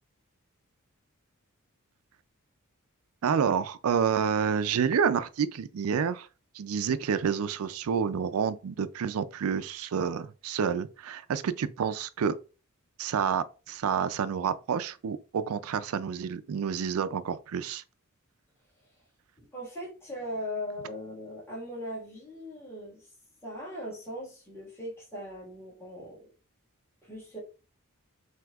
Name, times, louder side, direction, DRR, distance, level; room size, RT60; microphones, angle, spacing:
voice 1, 3.2-6.3 6.5-12.4 13.0-17.8, right 7 dB, 70° right, 0.4 m, -29 dB
voice 2, 19.4-23.1 23.4-26.3 27.0-27.4, equal, 10° left, 1.6 m, -39 dB
5.9 x 2.8 x 2.3 m
head